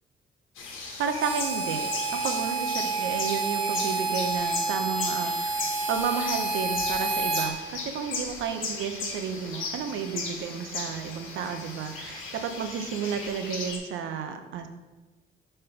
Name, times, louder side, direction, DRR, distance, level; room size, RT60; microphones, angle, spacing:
sound 1, 0.6-13.8, left 4 dB, 90° left, 1.3 m, -36 dB
voice 1, 1.0-14.7, right 6 dB, 80° right, 7 dB, 0.7 m, -32 dB
Harmonica, 1.2-7.5, right 3 dB, 25° right, 1.2 m, -29 dB
5.0 x 4.4 x 5.6 m, 1.2 s
cardioid pair, 90°, 20 cm